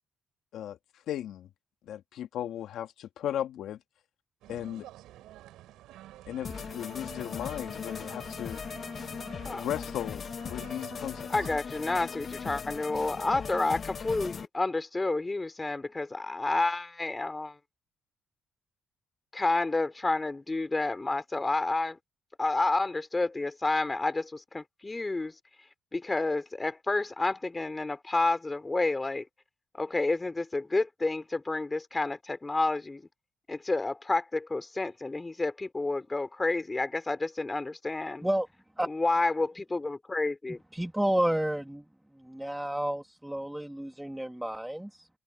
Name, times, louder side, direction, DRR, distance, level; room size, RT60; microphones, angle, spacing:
voice 1, 1.1-1.5 1.9-3.8 4.5-4.9 6.3-8.6 9.5-11.3, left 11 dB, 80° left, 2.0 m, -36 dB
sound 1, 4.4-11.6, right 14 dB, 90° right, 6.8 m, -50 dB
sound 2, 6.4-14.5, left 6 dB, 45° left, 1.2 m, -39 dB
voice 2, 11.3-17.6 19.3-22.0 22.4-25.4 25.9-29.3 29.7-33.1 33.5-38.3 38.9-40.6, left 2 dB, 20° left, 3.4 m, -30 dB
voice 3, 40.7-41.8 42.2-45.1, right 1 dB, 5° right, 2.0 m, -30 dB
open air
cardioid pair, 90°, 0 cm